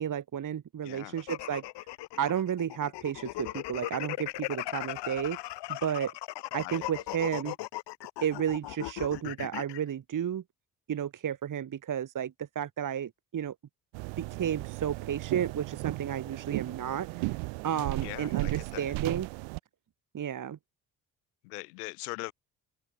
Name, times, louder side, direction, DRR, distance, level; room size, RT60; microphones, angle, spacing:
voice 1, 0.0-1.6 2.2-5.4 5.7-6.1 6.5-7.6 8.2-10.4 10.9-13.5 14.2-17.4 17.6-19.3 20.1-20.6, right 9 dB, 45° right, 1.5 m, -32 dB
voice 2, 0.8-1.2 6.6-6.9 18.0-18.9 21.4-22.3, left 25 dB, 85° left, 4.6 m, -41 dB
sound 1, 1.2-9.8, left 17 dB, 65° left, 1.2 m, -38 dB
sound 2, 13.9-19.6, right 27 dB, 80° right, 2.5 m, -35 dB
open air
hypercardioid pair, 55°, 44 cm